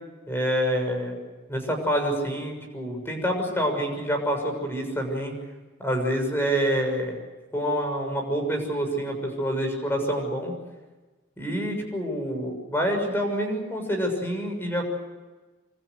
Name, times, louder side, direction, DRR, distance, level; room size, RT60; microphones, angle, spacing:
voice 1, 0.3-1.2 1.5-5.4 5.8-7.2 7.5-10.5 11.4-14.8, equal, 10° left, 3 dB, 6.7 m, -27 dB
27.0 x 26.5 x 6.5 m, 1.2 s
head